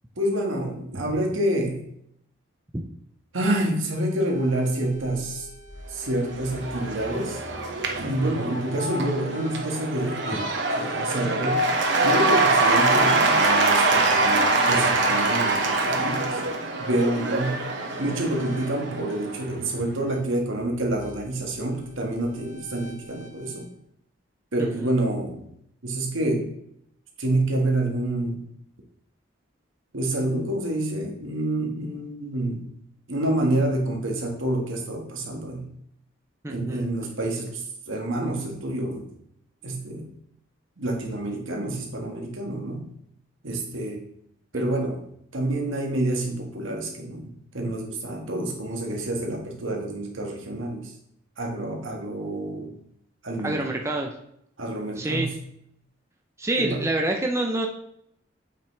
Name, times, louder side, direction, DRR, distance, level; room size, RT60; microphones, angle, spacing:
voice 1, 0.2-1.9 3.3-5.5 5.9-7.4 8.0-10.5 10.8-11.7 12.0-16.4 16.8-17.7 18.0-23.7 24.5-25.5 25.8-26.5 27.2-28.4 29.9-32.7 33.1-35.7 36.5-39.1 39.6-40.1 40.8-42.9 43.4-44.0 44.5-45.1 45.3-50.9 51.4-52.8 53.2-53.7 54.6-55.4 56.6-56.9, right 1 dB, 85° right, 1 dB, 1.6 m, -28 dB
sound 1, 3.9-23.7, equal, 70° left, 2.8 m, -45 dB
Cheering / Applause / Crowd, 6.1-19.5, right 2 dB, 65° right, 0.9 m, -24 dB
voice 2, 8.2-8.6 24.6-24.9 36.4-36.9 44.5-44.6 53.4-54.1 55.0-55.3 56.4-57.7, right 2 dB, 15° right, 2 dB, 0.6 m, -27 dB
8.3 x 5.9 x 3.2 m, 0.72 s
head